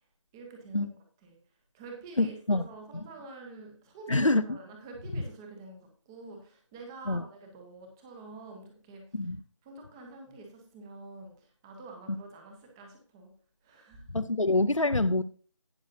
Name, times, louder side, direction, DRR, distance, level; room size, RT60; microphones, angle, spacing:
voice 1, 0.3-0.9 1.2-1.4 1.7-9.2 9.6-13.3 13.6-14.1, right 3 dB, 10° right, 3 dB, 1.2 m, -47 dB
voice 2, 2.2-2.6 2.9-3.0 4.1-4.6 7.1-7.2 9.1-9.4 14.1-15.2, left 2 dB, 85° left, 12 dB, 0.8 m, -26 dB
18.0 x 6.3 x 2.7 m, 0.41 s
figure-of-eight pair, 160°, 16 cm